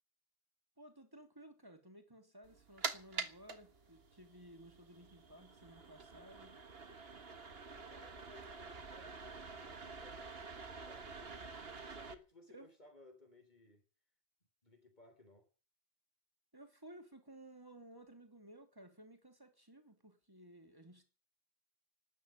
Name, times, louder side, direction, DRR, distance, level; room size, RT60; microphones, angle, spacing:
voice 1, 0.8-6.5 12.5-12.7 16.5-21.1, right 1 dB, 20° right, 2.9 m, -57 dB
sound 1, 2.4-12.1, right 4 dB, 70° right, 1.8 m, -47 dB
voice 2, 7.9-11.4 11.8-13.8 14.6-15.5, left 2 dB, 45° left, 3.7 m, -61 dB
12.5 x 9.9 x 9.9 m
omnidirectional pair, 1.1 m